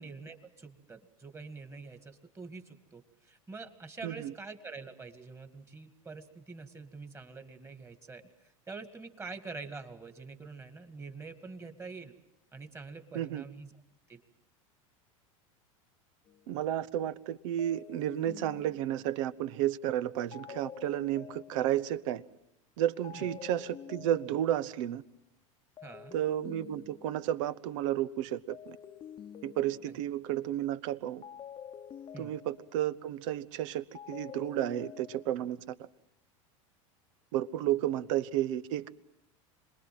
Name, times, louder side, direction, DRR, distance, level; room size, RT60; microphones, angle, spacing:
voice 1, 0.0-12.1 12.5-13.7 14.1-14.2 23.1-23.3 25.8-26.1 29.9-30.0 32.1-32.3, right 4 dB, 15° right, 9 dB, 2.2 m, -46 dB
voice 2, 4.0-4.3 13.1-13.4 16.5-22.2 22.8-25.0 26.1-28.8 29.4-31.2 32.2-35.7 37.3-38.9, right 12 dB, 65° right, 16 dB, 1.0 m, -32 dB
Pleasant pluck Dry, 16.3-16.5 17.6-19.3 20.3-22.0 23.0-24.7 25.8-27.5 28.5-30.2 31.2-32.9 33.9-35.3, left 8 dB, 30° left, 1.0 m, -48 dB
26.5 x 20.5 x 7.7 m, 0.83 s
hypercardioid pair, 100°, 17 cm